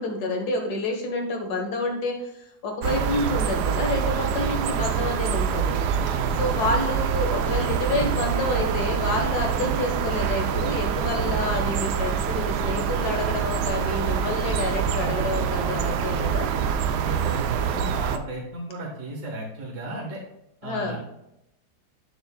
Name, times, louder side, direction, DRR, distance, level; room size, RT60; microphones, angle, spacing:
voice 1, 0.0-5.8 6.4-16.5 20.6-21.0, left 2 dB, 70° left, 3 dB, 1.8 m, -28 dB
sound 1, 2.8-18.2, right 7 dB, 80° right, 1.2 m, -25 dB
voice 2, 6.1-6.6 17.0-20.2 20.6-21.0, right 2 dB, 50° right, -2 dB, 1.6 m, -34 dB
8.7 x 6.9 x 2.2 m, 0.83 s
omnidirectional pair, 1.8 m